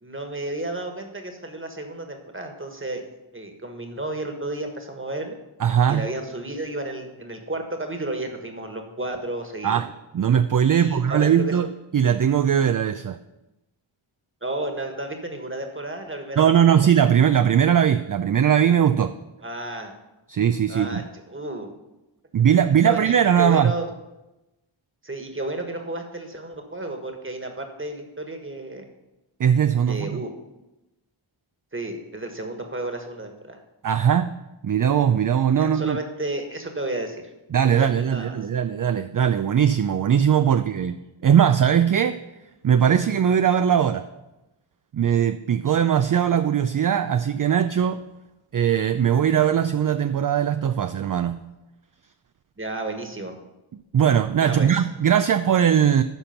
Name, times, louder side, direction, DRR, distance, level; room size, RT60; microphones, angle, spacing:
voice 1, 0.0-3.0 3.3-5.3 5.9-9.9 10.7-11.5 14.4-16.5 16.8-16.9 19.4-19.9 20.7-21.7 22.8-23.9 25.0-28.8 29.9-30.3 31.7-33.6 35.6-37.2 37.9-38.3 52.6-53.3 54.4-54.8, right 2 dB, 25° right, 5 dB, 1.5 m, -32 dB
voice 2, 5.6-6.1 9.6-11.7 11.9-13.2 16.4-19.1 20.3-21.0 22.3-23.7 29.4-30.2 33.8-34.3 34.6-36.0 37.5-40.9 41.2-42.2 42.6-44.1 44.9-48.0 48.5-51.4 53.7-56.0, right 8 dB, 45° right, 10 dB, 0.4 m, -20 dB
12.5 x 4.3 x 5.8 m, 0.99 s
wide cardioid pair, 50°, 48 cm